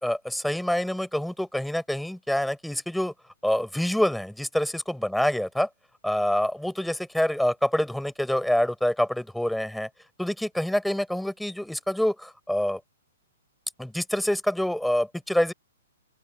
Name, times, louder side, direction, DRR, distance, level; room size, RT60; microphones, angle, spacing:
voice 1, 0.0-3.1 3.4-5.7 6.0-9.9 10.2-12.8 13.8-15.5, left 1 dB, ahead, 4.5 m, -26 dB
open air
figure-of-eight pair, 115°, 0 cm